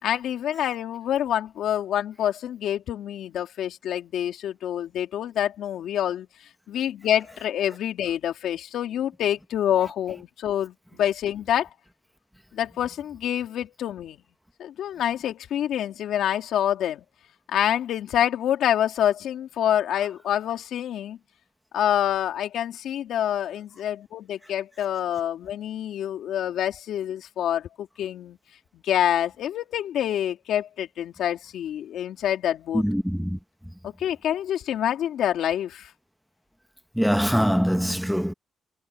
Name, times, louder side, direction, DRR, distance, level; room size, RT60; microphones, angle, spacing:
voice 1, 0.0-6.3 6.7-11.7 12.5-14.2 14.6-17.0 17.5-21.2 21.7-28.4 28.7-32.8 33.8-35.9, left 10 dB, 75° left, 3.2 m, -27 dB
voice 2, 32.7-33.4 37.0-38.3, equal, ahead, 1.3 m, -23 dB
cardioid pair, 90°, 0 cm